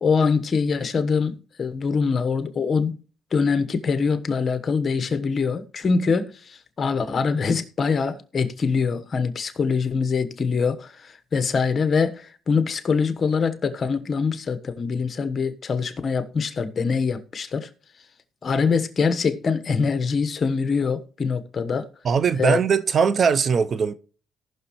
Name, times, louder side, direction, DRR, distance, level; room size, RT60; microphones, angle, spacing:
voice 1, 0.0-3.0 3.3-17.7 18.4-21.9 22.4-22.6, left 5 dB, 45° left, 1.1 m, -24 dB
voice 2, 22.0-23.9, right 6 dB, 50° right, 0.6 m, -20 dB
18.0 x 6.2 x 3.1 m
cardioid pair, 90°, 0 cm